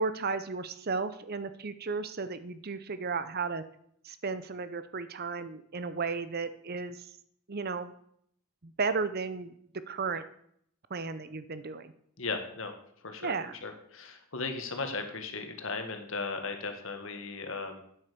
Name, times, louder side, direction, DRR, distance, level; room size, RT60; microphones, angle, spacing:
voice 1, 0.0-3.6 4.0-7.0 7.5-7.9 8.6-10.2 10.9-11.9 13.2-13.6, right 4 dB, 45° right, 12 dB, 0.8 m, -34 dB
voice 2, 12.2-12.7 13.0-13.3 13.6-17.8, left 4 dB, 65° left, 6 dB, 1.7 m, -36 dB
9.2 x 8.1 x 6.9 m, 0.67 s
head